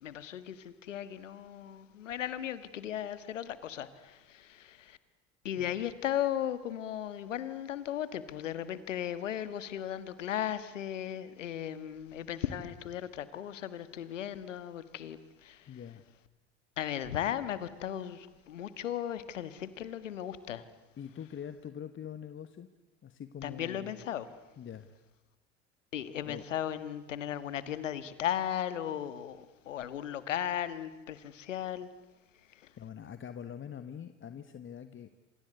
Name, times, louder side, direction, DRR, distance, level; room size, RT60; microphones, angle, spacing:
voice 1, 0.0-5.0 5.4-15.8 16.8-20.7 23.4-24.3 25.9-31.9 32.5-32.7, left 10 dB, 80° left, 14 dB, 1.6 m, -36 dB
voice 2, 15.7-16.0 21.0-22.7 23.0-23.9 24.6-24.9 26.2-26.4 32.8-35.1, left 8 dB, 30° left, 10 dB, 1.4 m, -44 dB
27.0 x 26.0 x 8.1 m, 1.1 s
figure-of-eight pair, 65°, 37 cm